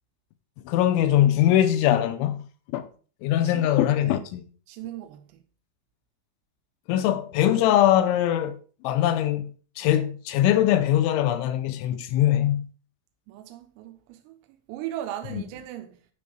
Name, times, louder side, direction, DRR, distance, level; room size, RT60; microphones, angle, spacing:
voice 1, 0.7-2.5 2.7-2.9 3.2-4.4 6.9-8.6 8.8-12.7, left 12 dB, 85° left, 2.8 m, -22 dB
voice 2, 3.4-4.3 4.7-5.4 13.3-16.1, right 12 dB, 85° right, 3.5 m, -38 dB
12.0 x 5.2 x 5.0 m
omnidirectional pair, 5.9 m